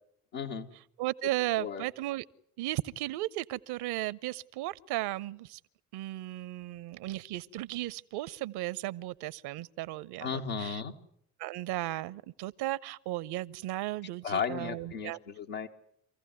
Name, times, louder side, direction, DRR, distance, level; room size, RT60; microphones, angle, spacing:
voice 1, 0.3-0.7 1.6-1.9 10.2-10.9 14.2-15.7, left 6 dB, 75° left, 1.7 m, -34 dB
voice 2, 1.0-2.3 2.6-5.6 5.9-10.8 11.4-15.2, right 16 dB, 65° right, 0.8 m, -35 dB
26.0 x 15.5 x 9.4 m
hypercardioid pair, 45°, 43 cm